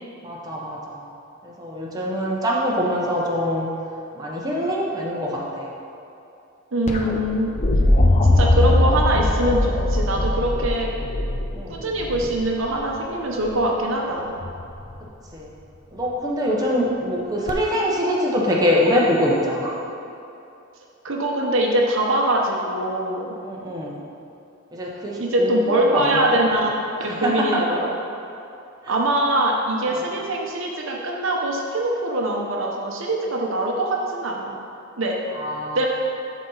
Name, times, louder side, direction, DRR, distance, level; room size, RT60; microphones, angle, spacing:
voice 1, 0.2-1.1 1.4-3.7 4.1-5.7 11.5-11.8 15.3-15.5 15.9-19.7 23.4-24.0 24.7-26.4 27.0-27.7 28.8-28.9 29.9-30.0 35.3-35.8, equal, 20° right, -4 dB, 0.9 m, -24 dB
voice 2, 6.7-7.5 8.2-10.9 11.7-14.3 21.0-23.3 25.2-26.7 27.0-27.9 28.9-34.6 35.0-35.2 35.7-35.9, right 1 dB, 65° right, -1 dB, 0.9 m, -23 dB
sound 1, 6.9-12.8 14.4-14.9 17.5-17.6, left 1 dB, 35° left, 0.5 m, -20 dB
11.5 x 4.1 x 3.9 m, 2.7 s
head